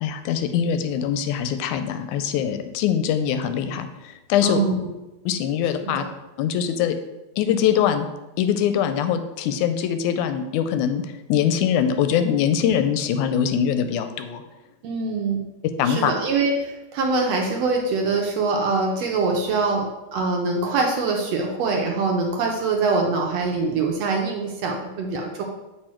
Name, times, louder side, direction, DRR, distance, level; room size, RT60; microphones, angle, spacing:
voice 1, 0.0-4.6 5.3-6.0 6.4-7.0 7.4-8.1 8.4-11.0 11.3-14.4 15.8-16.1, left 9 dB, 85° left, 9 dB, 2.0 m, -22 dB
voice 2, 4.4-4.9 5.8-6.1 14.8-15.4 15.8-25.4, right 3 dB, 70° right, 0 dB, 1.7 m, -24 dB
7.7 x 4.6 x 4.3 m, 1.0 s
omnidirectional pair, 3.5 m